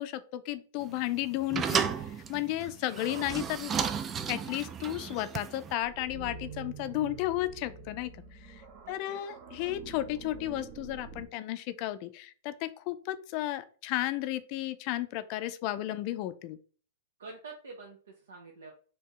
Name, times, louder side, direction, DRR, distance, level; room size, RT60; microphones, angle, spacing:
voice 1, 0.0-3.7 4.3-8.6 8.9-16.6, left 14 dB, 45° left, 13 dB, 0.4 m, -33 dB
sound 1, 0.8-5.7, right 7 dB, 25° right, 0.4 m, -33 dB
voice 2, 3.0-3.3 8.8-9.4 17.2-18.7, right 3 dB, 80° right, 0 dB, 0.8 m, -47 dB
sound 2, 5.8-11.3, right 4 dB, 40° right, 0.9 m, -46 dB
4.5 x 2.7 x 3.2 m, 0.42 s
hypercardioid pair, 115°, 0 cm